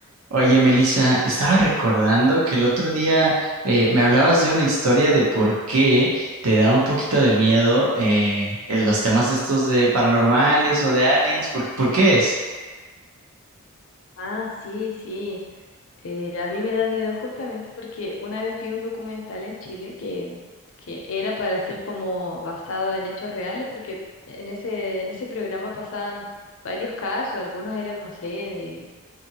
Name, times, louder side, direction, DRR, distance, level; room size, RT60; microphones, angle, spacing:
voice 1, 0.3-12.3, right 1 dB, 85° right, -5 dB, 0.8 m, -19 dB
voice 2, 14.2-15.4 16.0-20.4 20.8-24.0 24.3-26.2 26.6-28.9, left 3 dB, 65° left, -2 dB, 0.5 m, -29 dB
2.8 x 2.5 x 2.8 m, 1.4 s
head